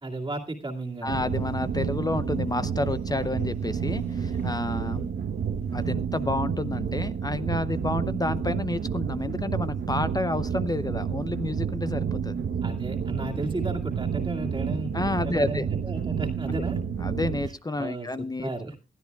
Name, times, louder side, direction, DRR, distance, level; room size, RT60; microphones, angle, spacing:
voice 1, 0.0-1.2 12.6-14.9 15.2-16.8 17.8-18.7, right 2 dB, 25° right, -1 dB, 2.1 m, -34 dB
sound 1, 0.6-5.9, left 2 dB, 40° left, 4.6 m, -55 dB
voice 2, 1.0-5.1 5.7-12.4 13.2-13.4 14.9-15.7 16.5-16.6 17.0-18.8, left 2 dB, 20° left, 13 dB, 0.6 m, -30 dB
sound 2, 1.1-17.5, right 7 dB, 70° right, 1.0 m, -30 dB
21.0 x 12.5 x 2.3 m, 0.30 s
cardioid pair, 80°, 19 cm